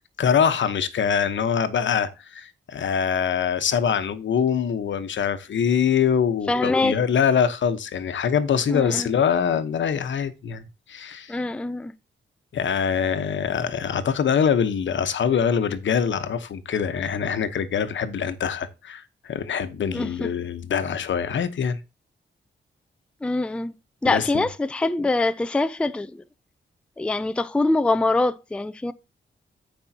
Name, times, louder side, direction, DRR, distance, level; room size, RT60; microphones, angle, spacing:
voice 1, 0.2-11.4 12.5-21.8 24.0-24.4, left 7 dB, 80° left, 1.0 m, -24 dB
voice 2, 6.5-7.0 8.7-9.1 11.3-11.9 19.9-20.1 23.2-23.7 24.0-26.2 27.0-28.9, left 2 dB, 5° left, 0.4 m, -24 dB
14.5 x 5.3 x 2.8 m
wide cardioid pair, 155°, 19 cm